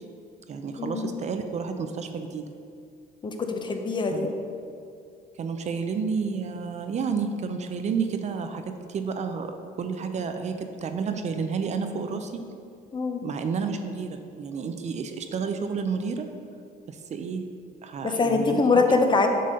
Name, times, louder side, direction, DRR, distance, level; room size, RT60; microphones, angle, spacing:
voice 1, 0.5-2.5 4.1-4.3 5.3-12.4 13.2-16.3 16.9-17.4 17.8-18.6, right 5 dB, 45° right, 6 dB, 0.5 m, -30 dB
voice 2, 3.2-4.3 12.9-13.2 18.0-19.3, left 4 dB, 25° left, 4 dB, 0.8 m, -23 dB
7.7 x 4.1 x 6.3 m, 2.4 s
cardioid pair, 110°, 17 cm